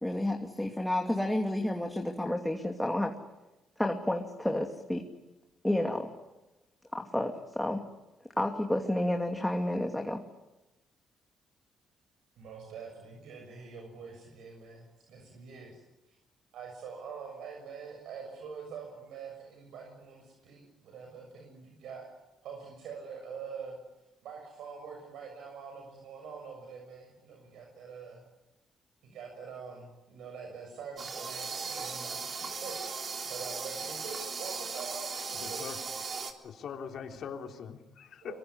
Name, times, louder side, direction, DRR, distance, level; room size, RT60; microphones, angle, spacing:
voice 1, 0.0-3.1 3.8-5.1 5.6-6.1 6.9-7.8 8.4-10.2, left 1 dB, 5° left, 2 dB, 2.6 m, -30 dB
voice 2, 12.4-15.8 16.1-16.2 16.5-22.0 22.4-23.8 24.2-28.2 29.0-32.2 32.6-32.8 33.3-35.7 38.2-38.4, right 6 dB, 80° right, 2 dB, 6.8 m, -45 dB
sound 1, 31.0-36.3, right 5 dB, 45° right, 3.7 m, -37 dB
voice 3, 35.4-35.8 36.4-38.4, left 7 dB, 65° left, 4 dB, 3.5 m, -42 dB
25.0 x 23.5 x 9.9 m, 1.0 s
cardioid pair, 90°, 0 cm